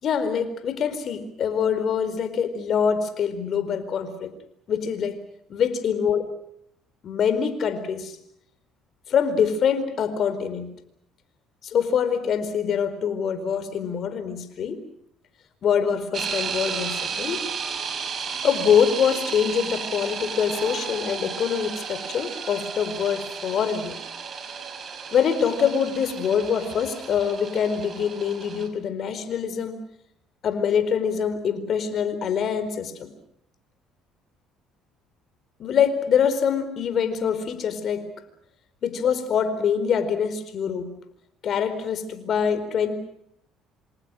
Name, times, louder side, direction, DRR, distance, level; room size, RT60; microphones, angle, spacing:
voice 1, 0.0-4.3 4.7-5.2 5.5-6.2 7.0-8.2 9.1-10.7 11.6-14.8 15.6-17.4 18.4-24.0 25.1-29.8 30.4-33.1 35.6-38.1 38.8-40.9 41.4-42.9, left 7 dB, 55° left, 11 dB, 4.4 m, -24 dB
sound 1, 16.1-28.7, right 6 dB, 45° right, 5.3 m, -33 dB
27.0 x 26.5 x 6.3 m, 0.73 s
hypercardioid pair, 65°, 0 cm